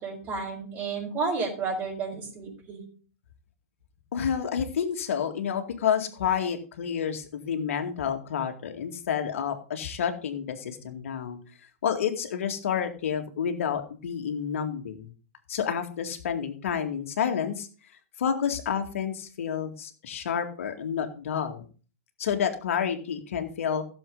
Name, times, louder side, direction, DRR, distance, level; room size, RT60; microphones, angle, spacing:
voice 1, 0.0-2.8, right 4 dB, 30° right, -6 dB, 5.0 m, -31 dB
voice 2, 4.1-11.4 11.8-15.1 15.5-17.7 18.2-21.7 22.2-23.8, left 8 dB, 65° left, 6 dB, 2.2 m, -29 dB
15.5 x 7.2 x 4.0 m, 0.38 s
figure-of-eight pair, 110°, 8 cm